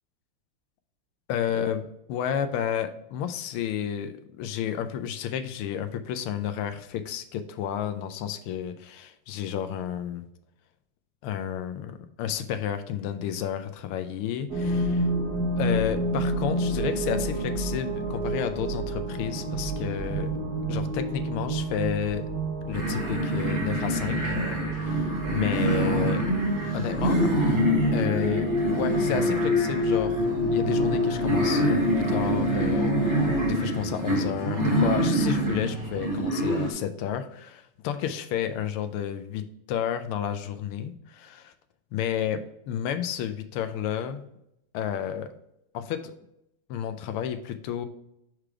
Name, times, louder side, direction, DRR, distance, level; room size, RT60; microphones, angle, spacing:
voice 1, 1.3-1.8 2.1-10.2 11.2-15.1 15.6-20.3 20.7-22.3 22.7-24.3 24.7-26.3 26.7-27.3 27.9-39.4 39.7-41.5 41.9-44.2 44.7-45.3 45.7-46.1 46.7-47.9, left 9 dB, 85° left, 9 dB, 1.5 m, -31 dB
sound 1, 14.5-33.5, equal, 50° right, 1.5 m, -29 dB
sound 2, 22.7-36.7, equal, 15° right, 2.0 m, -26 dB
4.9 x 4.9 x 4.5 m, 0.81 s
omnidirectional pair, 2.3 m